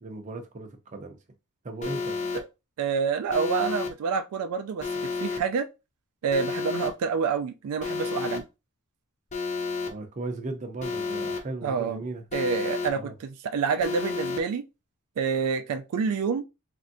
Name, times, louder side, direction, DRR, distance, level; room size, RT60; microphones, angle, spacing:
voice 1, 0.0-1.2 1.6-2.2 9.9-12.2 12.9-13.1, right 2 dB, 35° right, 0.5 m, -36 dB
Alarm, 1.8-2.4 3.3-3.9 4.8-5.4 6.3-6.9 7.8-8.4 9.3-9.9 10.8-11.4 12.3-12.9 13.8-14.4, left 4 dB, 35° left, 0.5 m, -31 dB
voice 2, 2.8-4.9 5.2-5.7 6.2-8.5 11.6-12.0 12.3-14.6 15.2-16.5, right 5 dB, 80° right, 0.3 m, -27 dB
3.2 x 2.6 x 2.5 m
head